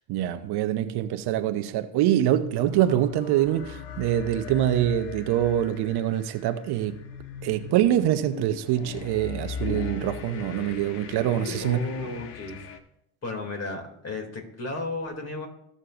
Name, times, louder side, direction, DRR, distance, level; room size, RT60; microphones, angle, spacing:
voice 1, 0.1-7.0 7.4-11.8, right 12 dB, 60° right, 0.9 m, -25 dB
sound 1, 2.6-12.8, left 6 dB, 75° left, 1.2 m, -39 dB
voice 2, 11.6-12.6 13.2-15.5, left 2 dB, 35° left, 2.7 m, -34 dB
16.0 x 6.4 x 2.6 m
supercardioid pair, 80°, 44 cm